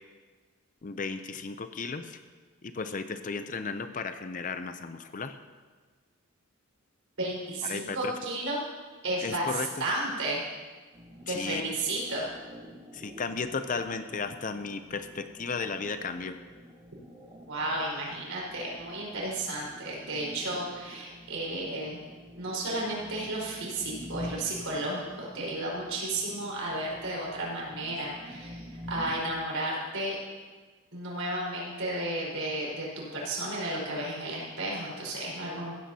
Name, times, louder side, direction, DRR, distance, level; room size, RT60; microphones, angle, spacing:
voice 1, 0.8-2.2 2.6-5.4 7.6-8.1 9.2-9.7 11.3-11.8 12.9-16.4, left 4 dB, 40° left, 9 dB, 0.5 m, -34 dB
voice 2, 7.2-8.6 9.0-10.4 11.3-12.2 17.5-22.0 22.4-30.2 30.9-35.7, right 1 dB, 80° right, -5 dB, 4.8 m, -33 dB
sound 1, 10.9-29.3, equal, 20° right, 1.9 m, -47 dB
15.5 x 14.5 x 2.8 m, 1.4 s
head